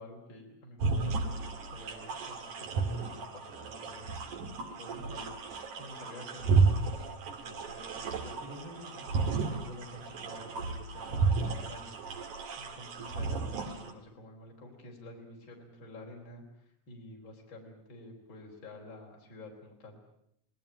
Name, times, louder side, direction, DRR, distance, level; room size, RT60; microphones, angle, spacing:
voice 1, 0.0-1.4 1.7-4.1 4.6-5.4 5.8-6.7 7.3-9.1 9.5-12.0 12.6-20.0, left 1 dB, 40° left, 0 dB, 4.7 m, -49 dB
sound 1, 0.8-13.9, right 4 dB, 85° right, 3.8 m, -33 dB
26.0 x 19.5 x 8.9 m, 0.72 s
omnidirectional pair, 3.4 m